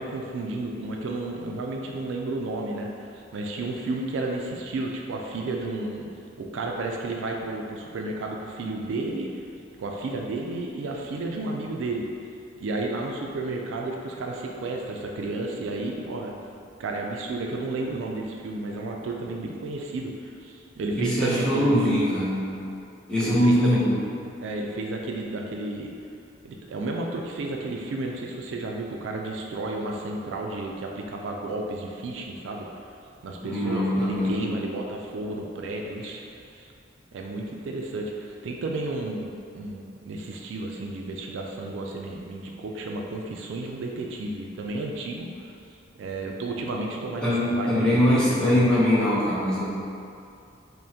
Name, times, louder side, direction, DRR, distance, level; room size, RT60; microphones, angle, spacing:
voice 1, 0.0-6.1 6.4-9.3 9.8-12.1 12.6-16.4 16.8-22.2 23.2-24.0 24.4-25.9 26.4-32.7 33.2-36.7 37.1-45.3 46.0-48.9, right 2 dB, 70° right, 0 dB, 0.3 m, -32 dB
voice 2, 21.0-22.5 23.1-24.0 33.4-34.3 47.2-49.6, left 1 dB, 5° left, -10 dB, 0.8 m, -22 dB
5.3 x 2.1 x 2.7 m, 2.5 s
head